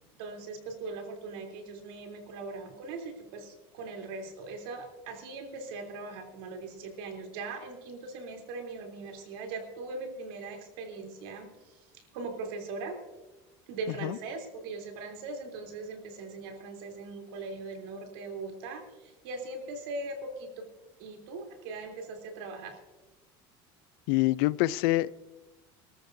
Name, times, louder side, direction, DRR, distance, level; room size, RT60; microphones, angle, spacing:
voice 1, 0.2-13.0 13.7-20.7 21.0-22.8, right 3 dB, 85° right, 3.3 m, -40 dB
voice 2, 24.1-25.1, left 18 dB, 80° left, 0.5 m, -25 dB
25.5 x 13.5 x 2.7 m
cardioid pair, 155°, 12 cm